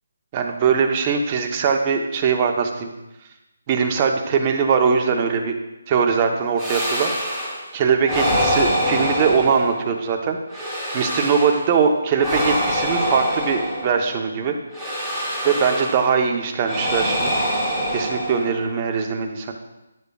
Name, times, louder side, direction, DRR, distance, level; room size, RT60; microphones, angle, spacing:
voice 1, 0.3-2.9 3.7-5.6 5.9-7.1 7.7-14.6 15.4-17.3 17.9-19.5, right 6 dB, 25° right, 3 dB, 0.7 m, -21 dB
sound 1, 6.6-7.7 8.0-10.0 10.5-11.7 12.2-14.2 14.7-16.1 16.6-18.7, equal, 5° left, 2.1 m, -25 dB
10.5 x 6.8 x 2.3 m, 0.99 s
figure-of-eight pair, 160°, 0 cm